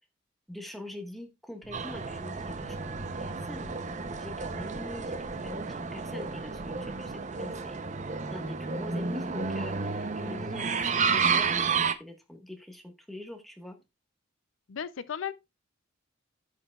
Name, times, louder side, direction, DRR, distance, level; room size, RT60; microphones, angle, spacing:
voice 1, 0.5-3.7 4.2-13.8, left 1 dB, ahead, 1.4 m, -44 dB
sound 1, 1.6-7.2, equal, 30° left, 6.1 m, -49 dB
sound 2, 1.7-11.9, right 5 dB, 35° right, 0.7 m, -31 dB
voice 2, 14.7-15.3, left 8 dB, 70° left, 0.5 m, -35 dB
15.5 x 5.8 x 2.3 m
head